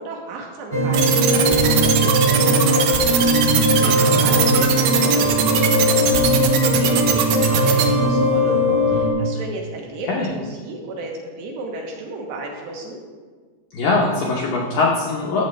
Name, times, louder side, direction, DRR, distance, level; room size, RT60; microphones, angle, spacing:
voice 1, 0.0-13.0, right 2 dB, 75° right, 0 dB, 2.8 m, -33 dB
sound 1, 0.7-9.1, equal, 30° right, 0.8 m, -19 dB
sound 2, 0.9-7.9, right 9 dB, 90° right, 2.2 m, -21 dB
voice 2, 3.8-4.2 10.0-10.3 13.7-15.4, left 3 dB, 85° left, -2 dB, 1.9 m, -22 dB
13.5 x 7.5 x 3.2 m, 1.5 s
omnidirectional pair, 5.5 m